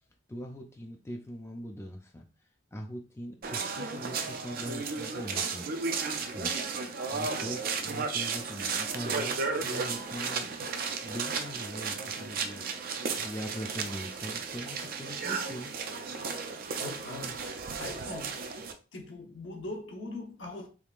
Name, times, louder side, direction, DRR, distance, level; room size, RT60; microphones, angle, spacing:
voice 1, 0.3-2.3 2.7-5.6 6.3-6.5 7.1-10.5 11.0-15.7, equal, 15° left, 0.4 m, -41 dB
sound 1, 3.4-18.7, right 5 dB, 50° right, 0.5 m, -34 dB
voice 2, 16.8-17.4 17.8-18.4 18.9-20.7, left 2 dB, 75° left, 0.9 m, -41 dB
3.5 x 3.2 x 2.4 m
head